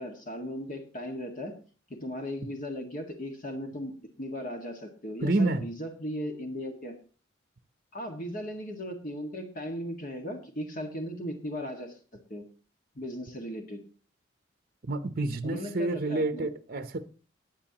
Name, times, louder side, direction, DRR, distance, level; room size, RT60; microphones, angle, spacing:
voice 1, 0.0-1.6 1.9-3.9 4.2-7.0 7.9-12.0 12.3-12.5 12.9-13.8 15.4-16.5, equal, 45° left, 1.8 m, -37 dB
voice 2, 5.2-5.7 14.8-17.0, right 2 dB, 50° right, 0.8 m, -28 dB
20.0 x 9.2 x 2.9 m
head